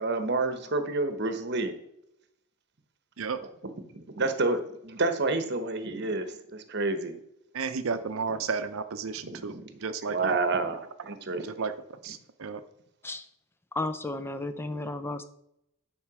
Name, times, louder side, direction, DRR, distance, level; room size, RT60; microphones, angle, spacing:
voice 1, 0.0-1.8 3.6-7.2 9.2-9.8 10.1-11.6, right 3 dB, 50° right, 9 dB, 1.1 m, -29 dB
voice 2, 7.5-9.5 9.8-10.4 11.4-11.7 12.0-12.6, right 5 dB, 70° right, 10 dB, 0.6 m, -32 dB
voice 3, 13.7-15.2, left 2 dB, 10° left, 10 dB, 0.5 m, -33 dB
10.5 x 4.5 x 6.1 m, 0.79 s
head